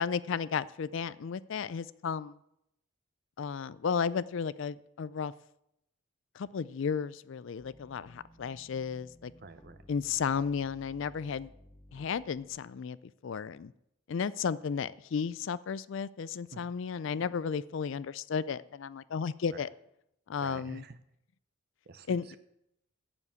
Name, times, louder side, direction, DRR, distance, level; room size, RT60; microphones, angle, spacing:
voice 1, 0.0-2.3 3.4-5.3 6.4-9.3 9.9-11.5 11.9-13.0 13.2-13.7 14.1-19.7 20.3-20.8 22.1-22.4, left 6 dB, 60° left, 18 dB, 0.4 m, -33 dB
sound 1, 7.6-12.6, equal, 15° left, 0.7 m, -57 dB
voice 2, 9.4-9.8 16.5-16.7 19.5-19.7 20.4-21.0 21.8-22.4, right 3 dB, 45° right, 11 dB, 0.8 m, -48 dB
8.1 x 7.1 x 8.5 m, 0.80 s
head